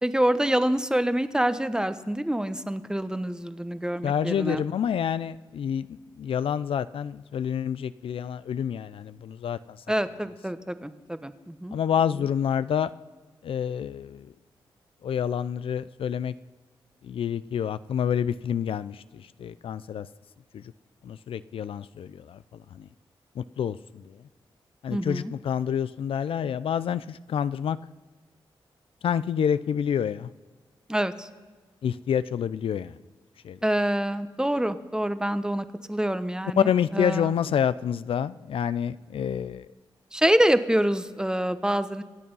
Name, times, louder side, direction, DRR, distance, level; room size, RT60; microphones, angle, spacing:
voice 1, 0.0-4.6 9.9-12.3 24.9-25.3 30.9-31.3 33.6-37.3 40.1-42.0, right 1 dB, 10° right, 12 dB, 1.0 m, -26 dB
voice 2, 4.0-5.9 6.2-9.8 11.7-12.9 13.4-14.3 15.0-16.3 17.1-20.1 21.0-22.4 22.7-22.8 23.4-23.8 24.8-27.8 29.0-30.3 31.8-32.9 33.4-33.6 36.6-39.7, left 8 dB, 75° left, 15 dB, 0.4 m, -28 dB
25.5 x 8.6 x 5.5 m, 1.4 s
cardioid pair, 50°, 9 cm